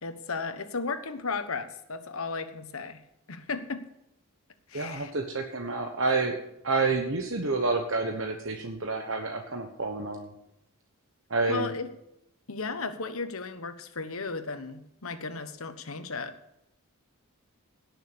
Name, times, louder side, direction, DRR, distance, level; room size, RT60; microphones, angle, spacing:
voice 1, 0.0-3.0 3.3-3.8 4.7-5.1 11.5-11.9 12.5-16.3, left 4 dB, 70° left, 9 dB, 1.2 m, -35 dB
voice 2, 4.7-6.4 6.6-10.3 11.3-11.7, right 3 dB, 60° right, 4 dB, 1.1 m, -29 dB
17.0 x 6.6 x 6.9 m, 0.83 s
head